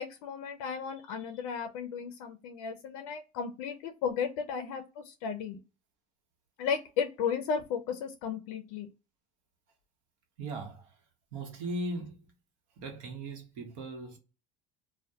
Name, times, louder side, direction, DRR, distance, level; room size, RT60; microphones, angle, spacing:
voice 1, 0.0-5.6 6.6-8.9, left 6 dB, 80° left, 0.4 m, -34 dB
voice 2, 10.4-11.0 11.3-12.2 12.8-14.2, right 1 dB, 80° right, 0.9 m, -38 dB
2.2 x 2.1 x 2.6 m
supercardioid pair, 125°, 17 cm